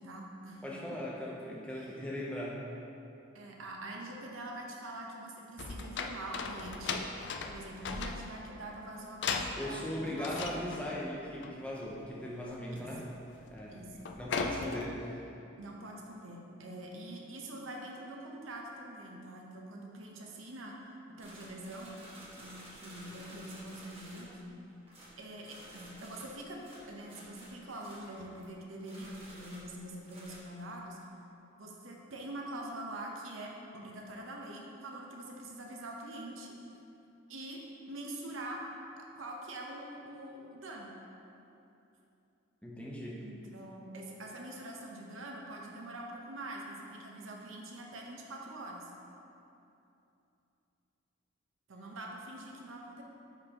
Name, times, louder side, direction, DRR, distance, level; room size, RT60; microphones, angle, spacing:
voice 1, 0.0-1.0 1.7-2.0 3.3-7.0 7.5-10.8 12.7-12.8 13.7-14.1 15.6-20.8 21.1-22.0 22.4-24.6 25.2-31.0 31.6-36.5 37.3-38.6 39.0-40.9 43.2-48.9 51.7-53.0, right 1 dB, 85° right, 0 dB, 0.8 m, -44 dB
voice 2, 0.6-2.6 9.5-13.0 13.5-15.3 42.6-43.2, left 1 dB, 5° left, -5 dB, 0.7 m, -39 dB
sound 1, 5.6-8.5 9.2-9.8 10.2-10.9 11.3-11.5 11.8-12.0 12.4-12.8 13.1-13.6 13.9-15.0, left 4 dB, 60° left, 0.4 m, -37 dB
sound 2, 21.2-24.5 24.9-28.5 28.8-30.4, right 1 dB, 30° right, 1.3 m, -52 dB
10.0 x 4.4 x 2.9 m, 2.8 s
head